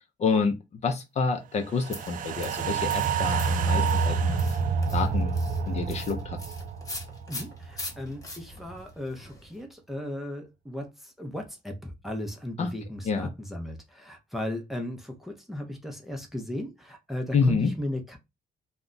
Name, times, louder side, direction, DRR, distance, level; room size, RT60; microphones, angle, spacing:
voice 1, 0.2-0.6 0.8-4.4 4.9-5.3 5.7-6.4 12.6-12.7 13.0-13.3 17.3-17.7, left 5 dB, 45° left, 0.5 m, -27 dB
sound 1, 1.8-8.2 8.5-8.6, right 5 dB, 55° right, 0.4 m, -28 dB
sound 2, 1.9-9.6, left 2 dB, 20° left, 0.9 m, -43 dB
voice 2, 7.3-18.2, left 1 dB, ahead, 0.6 m, -36 dB
2.3 x 2.1 x 3.7 m
cardioid pair, 135°, 16 cm